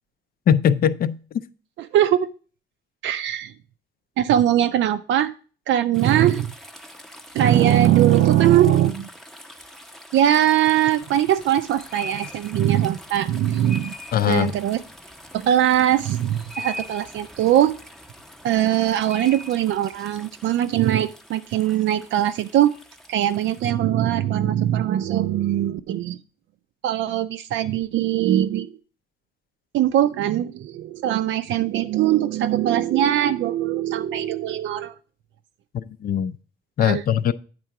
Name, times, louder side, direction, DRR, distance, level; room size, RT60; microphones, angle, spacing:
voice 1, 0.5-1.4 14.1-14.5 35.7-36.4 36.8-37.3, left 9 dB, 50° left, 0.4 m, -21 dB
voice 2, 1.8-2.3 3.0-3.5 4.2-5.3 5.7-6.5 7.3-9.1 10.1-13.9 14.3-14.8 15.3-17.8 18.4-22.7 23.1-26.2 26.8-28.7 29.7-35.0 36.8-37.0, right 12 dB, 80° right, 0.4 m, -21 dB
sound 1, 5.9-23.7, left 1 dB, ahead, 0.6 m, -42 dB
8.9 x 3.7 x 5.7 m
cardioid pair, 150°, 20 cm